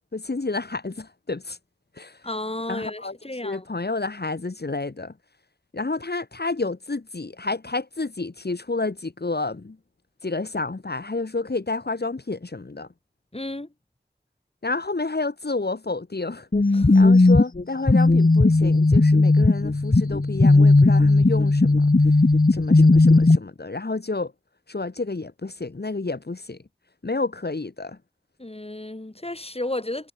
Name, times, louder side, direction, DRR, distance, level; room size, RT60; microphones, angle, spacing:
voice 1, 0.1-1.6 2.0-2.2 2.7-3.2 3.4-5.1 5.7-9.8 10.2-12.9 14.6-16.5 16.9-21.9 22.5-24.3 24.7-26.6 27.0-28.0, left 3 dB, 80° left, 2.2 m, -30 dB
voice 2, 2.2-3.6 13.3-13.7 16.7-16.9 28.4-30.1, left 1 dB, 35° left, 3.9 m, -32 dB
sound 1, 16.5-23.4, left 2 dB, 60° left, 2.0 m, -16 dB
wide cardioid pair, 40°, 17 cm